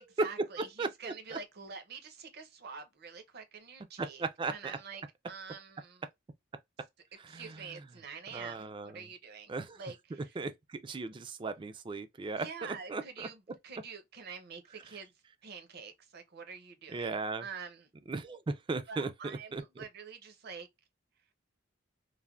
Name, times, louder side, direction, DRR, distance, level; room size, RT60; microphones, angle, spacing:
voice 1, 0.0-4.2 4.5-6.0 7.3-10.3 12.3-15.1 15.4-17.9 18.9-20.7, right 5 dB, 55° right, 0.7 m, -46 dB
voice 2, 0.6-1.4 4.0-4.8 7.2-7.9 8.3-9.1 9.5-9.8 10.4-13.3 16.9-17.4 18.1-19.8, right 3 dB, 25° right, 0.3 m, -38 dB
3.2 x 2.1 x 2.3 m
head